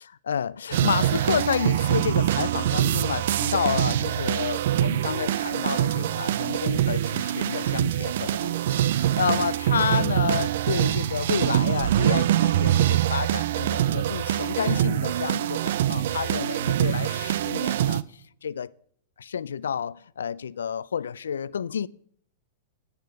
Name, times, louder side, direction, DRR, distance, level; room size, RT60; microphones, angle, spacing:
voice 1, 0.0-18.7 19.2-21.9, left 7 dB, 80° left, 0.4 m, -30 dB
sound 1, 0.7-18.0, right 12 dB, 65° right, 0.4 m, -24 dB
10.5 x 8.2 x 5.0 m
hypercardioid pair, 110°, 0 cm